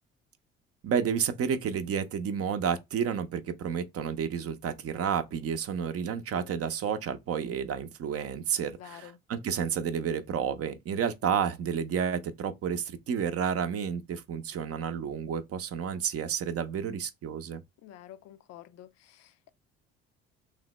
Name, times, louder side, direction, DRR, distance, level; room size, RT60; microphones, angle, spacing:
voice 1, 0.8-17.6, right 7 dB, 50° right, 0.6 m, -31 dB
voice 2, 8.7-9.2 17.8-19.5, left 12 dB, 55° left, 0.5 m, -49 dB
3.2 x 2.0 x 3.1 m
hypercardioid pair, 60°, 31 cm